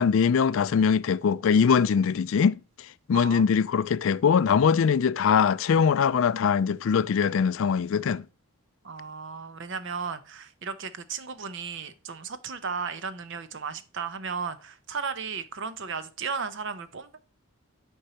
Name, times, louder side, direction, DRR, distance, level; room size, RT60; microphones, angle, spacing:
voice 1, 0.0-2.6 3.1-8.2, left 6 dB, 65° left, 0.3 m, -22 dB
voice 2, 3.1-3.5 8.8-17.2, right 5 dB, 55° right, 0.7 m, -35 dB
7.9 x 4.5 x 2.8 m
head